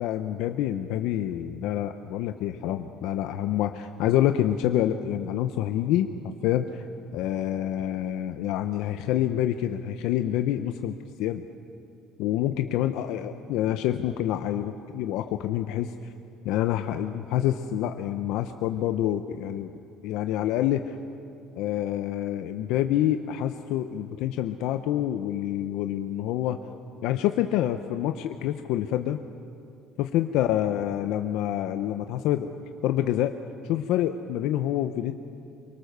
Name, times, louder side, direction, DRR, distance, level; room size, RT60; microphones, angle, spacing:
voice 1, 0.0-6.1 6.4-6.9 7.1-10.9 11.2-11.4 12.2-15.9 16.4-19.7 20.0-21.0 21.6-26.6 27.0-29.2 30.0-32.5 32.8-33.3 33.7-35.1, left 12 dB, 70° left, 8 dB, 0.8 m, -27 dB
24.0 x 23.5 x 6.8 m, 2.6 s
cardioid pair, 155°, 0 cm